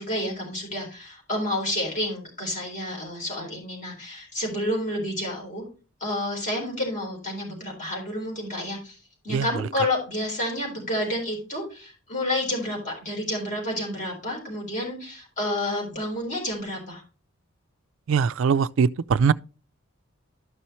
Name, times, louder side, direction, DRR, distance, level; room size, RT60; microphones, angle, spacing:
voice 1, 0.0-5.6 6.0-9.0 9.2-17.0, left 1 dB, 35° left, 4.1 m, -30 dB
voice 2, 18.1-19.3, right 6 dB, 60° right, 0.3 m, -21 dB
12.5 x 5.6 x 3.0 m
head